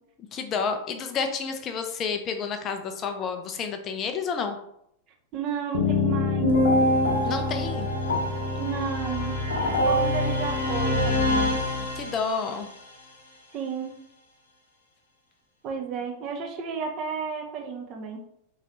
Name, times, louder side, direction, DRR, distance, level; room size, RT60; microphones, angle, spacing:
voice 1, 0.3-4.6 7.2-7.9 11.8-12.7, left 5 dB, 30° left, 6 dB, 0.4 m, -30 dB
voice 2, 5.3-6.5 8.6-9.4 9.8-11.5 13.5-14.0 15.6-18.2, right 6 dB, 35° right, 2 dB, 0.7 m, -32 dB
sound 1, 5.7-12.5, left 1 dB, 65° left, 0.8 m, -24 dB
3.7 x 3.1 x 3.1 m, 0.74 s
figure-of-eight pair, 90°, 0 cm